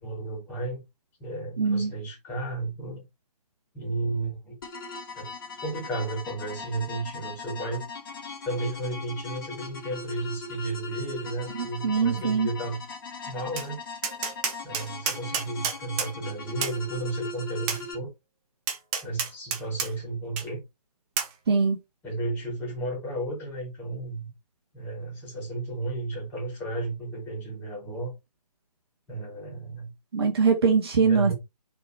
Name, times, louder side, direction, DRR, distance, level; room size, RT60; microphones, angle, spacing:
voice 1, 0.0-0.8 1.2-3.0 3.7-4.5 5.2-5.3 5.6-7.8 8.4-12.8 13.3-13.8 14.6-18.1 19.0-20.6 22.0-24.3 24.7-28.1 29.1-29.9 31.0-31.3, right 2 dB, 10° left, 3.6 m, -33 dB
voice 2, 1.6-1.9 11.8-12.5 21.5-21.8 30.1-31.3, right 5 dB, 35° right, 1.4 m, -22 dB
sound 1, 4.6-17.9, left 3 dB, 30° left, 2.6 m, -40 dB
Tap, 13.6-13.7 14.0-16.1 16.6-16.8 17.7-17.8 18.7-19.9 20.4-20.5 21.2-21.3, right 7 dB, 10° right, 0.6 m, -29 dB
6.8 x 4.3 x 4.6 m
figure-of-eight pair, 145°, 21 cm